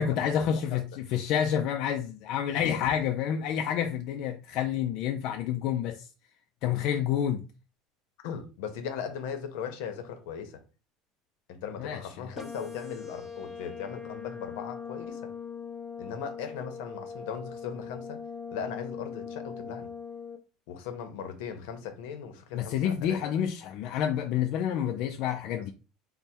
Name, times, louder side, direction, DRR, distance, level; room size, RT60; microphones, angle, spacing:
voice 1, 0.0-6.1 6.6-7.4 11.8-12.0 22.5-25.7, left 9 dB, 45° left, 0.3 m, -28 dB
voice 2, 8.2-10.6 11.5-15.3 16.0-18.2 18.5-19.9 20.7-23.2 25.6-25.7, left 7 dB, 70° left, 0.8 m, -38 dB
sound 1, 12.4-20.4, left 6 dB, 10° left, 0.7 m, -41 dB
3.3 x 2.0 x 4.3 m
cardioid pair, 170°, 0 cm